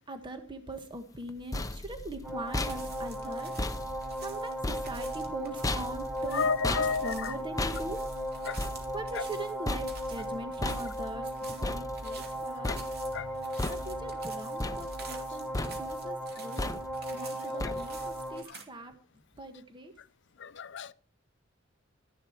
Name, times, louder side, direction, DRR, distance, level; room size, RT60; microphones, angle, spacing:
voice 1, 0.1-3.5 4.2-8.1 8.9-11.3 11.6-12.8 13.7-16.8 17.1-18.9 19.3-19.9, right 1 dB, 25° right, 1.4 m, -41 dB
sound 1, 1.1-12.4 12.6-13.2 13.6-14.2 14.6-15.3 15.5-16.1 16.6-17.1 17.6-18.1, left 2 dB, 15° left, 0.8 m, -37 dB
sound 2, 2.2-18.4, right 1 dB, 5° right, 1.1 m, -37 dB
sound 3, 2.5-18.6, right 5 dB, 55° right, 2.7 m, -50 dB
voice 2, 6.3-7.1 8.5-8.6 13.1-13.3 20.4-20.9, left 5 dB, 65° left, 0.6 m, -30 dB
13.0 x 11.0 x 4.6 m
head